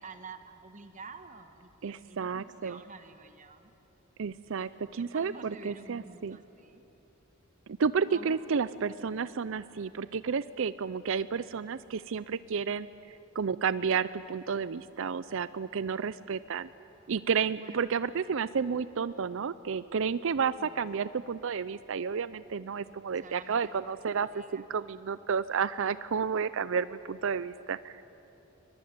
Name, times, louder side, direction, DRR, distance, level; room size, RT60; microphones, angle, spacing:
voice 1, 0.0-3.7 4.6-6.9 8.1-8.4 17.6-17.9 20.6-21.1 23.2-24.7, right 4 dB, 40° right, 8 dB, 1.3 m, -49 dB
voice 2, 1.8-2.8 4.2-6.4 7.7-16.7 17.1-28.0, right 6 dB, 70° right, 16 dB, 0.5 m, -31 dB
23.5 x 21.5 x 9.5 m, 2.9 s
head